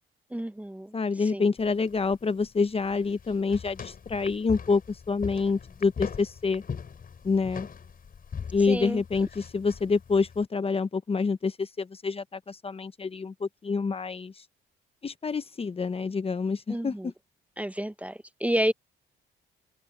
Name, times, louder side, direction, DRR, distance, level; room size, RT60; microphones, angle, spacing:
voice 1, 0.3-1.0 1.3-1.5 8.7-9.0 16.7-17.1 17.6-18.7, right 1 dB, 5° right, 1.0 m, -30 dB
voice 2, 0.9-6.6 7.2-7.7 8.5-14.4 15.0-17.1, left 4 dB, 30° left, 0.9 m, -27 dB
sound 1, 1.6-10.4, left 6 dB, 45° left, 5.4 m, -41 dB
open air
cardioid pair, 90°, 20 cm